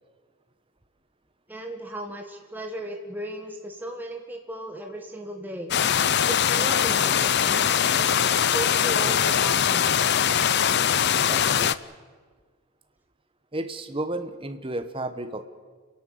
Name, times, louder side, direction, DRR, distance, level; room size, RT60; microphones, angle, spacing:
voice 1, 1.5-5.7 6.2-7.7 8.0-10.0, right 1 dB, 10° right, 2 dB, 1.6 m, -36 dB
sound 1, 5.7-11.8, left 8 dB, 50° left, 0.5 m, -22 dB
voice 2, 11.3-11.8 13.5-15.4, right 1 dB, 25° right, 8 dB, 1.2 m, -32 dB
30.0 x 11.5 x 8.7 m, 1.5 s
head